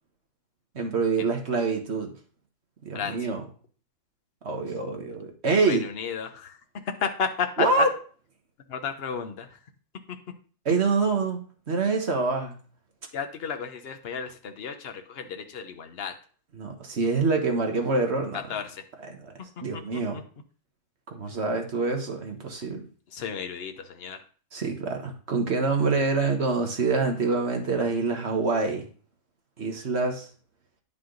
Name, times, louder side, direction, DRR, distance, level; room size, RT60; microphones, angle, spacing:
voice 1, 0.7-2.1 2.8-3.5 4.4-5.8 7.6-7.9 10.6-11.4 11.7-12.6 16.5-18.6 19.0-19.3 19.6-20.2 21.1-22.9 24.5-28.9 29.6-30.3, right 3 dB, 50° right, 3 dB, 1.6 m, -26 dB
voice 2, 2.9-3.3 5.7-6.6 7.0-7.9 8.7-9.5 13.1-16.1 18.3-18.8 19.7-20.2 23.1-24.2, left 6 dB, 45° left, 7 dB, 1.0 m, -32 dB
9.7 x 5.8 x 3.9 m, 0.41 s
omnidirectional pair, 1.6 m